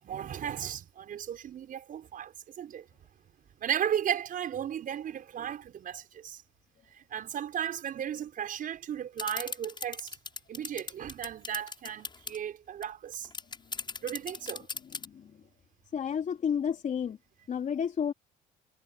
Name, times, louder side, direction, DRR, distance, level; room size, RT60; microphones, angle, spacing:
voice 1, 0.0-2.9 3.6-6.4 6.9-10.2 10.5-13.3 14.0-14.7, right 9 dB, 55° right, 6.4 m, -35 dB
sound 1, 9.2-12.4 12.8-12.9 13.1-15.1, left 4 dB, 25° left, 7.2 m, -37 dB
voice 2, 14.8-15.3 15.9-17.2 17.5-18.1, left 7 dB, 45° left, 3.6 m, -31 dB
cardioid pair, 110°, 17 cm